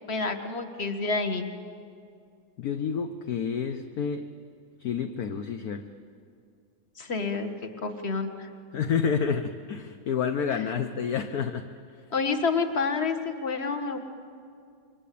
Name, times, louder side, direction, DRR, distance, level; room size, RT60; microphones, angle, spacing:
voice 1, 0.1-1.5 7.0-7.5 7.8-8.5 10.5-10.7 12.1-14.0, left 4 dB, 35° left, 7 dB, 1.8 m, -28 dB
voice 2, 2.6-4.2 4.8-5.8 8.7-11.6, left 6 dB, 60° left, 7 dB, 1.3 m, -29 dB
28.0 x 23.5 x 8.5 m, 2.3 s
omnidirectional pair, 2.0 m